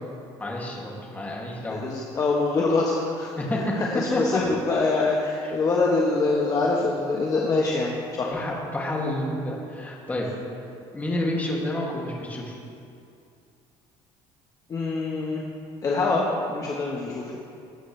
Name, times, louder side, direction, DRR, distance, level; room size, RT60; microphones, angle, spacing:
voice 1, 0.4-1.8 3.3-3.8 4.1-4.4 8.2-10.3 10.9-12.5, left 1 dB, 15° left, -3 dB, 2.5 m, -29 dB
voice 2, 1.7-3.3 3.7-8.4 14.7-15.4 15.8-17.3, left 3 dB, 35° left, -3 dB, 1.3 m, -24 dB
20.5 x 8.7 x 3.4 m, 2.4 s
cardioid pair, 125°, 10 cm